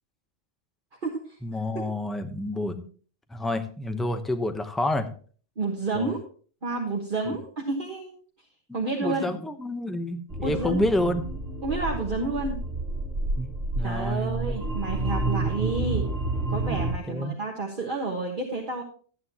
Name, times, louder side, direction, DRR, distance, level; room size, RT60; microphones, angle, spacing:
voice 1, 1.4-2.8 3.3-5.1 5.9-6.1 7.3-7.4 8.7-11.3 13.4-14.6 16.7-17.4, left 1 dB, ahead, 7 dB, 0.7 m, -29 dB
voice 2, 5.6-6.2 6.6-8.1 8.7-9.2 10.4-10.8 11.6-12.6 13.8-16.1 16.5-18.8, right 3 dB, 45° right, -1 dB, 1.5 m, -30 dB
sound 1, 10.3-17.0, right 2 dB, 75° right, 2.2 m, -30 dB
12.5 x 9.6 x 2.9 m, 0.42 s
omnidirectional pair, 1.3 m